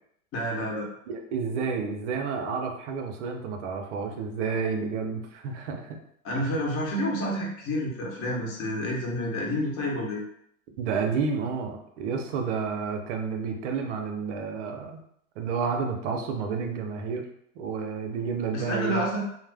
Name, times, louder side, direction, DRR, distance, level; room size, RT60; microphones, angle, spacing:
voice 1, 0.3-0.9 6.2-10.2 18.5-19.2, equal, 30° left, -2 dB, 0.9 m, -29 dB
voice 2, 1.1-6.0 6.3-6.5 10.8-15.0 15.4-17.3 17.6-19.0, right 5 dB, 55° right, 4 dB, 0.6 m, -30 dB
2.4 x 2.1 x 3.3 m, 0.70 s
hypercardioid pair, 110°, 43 cm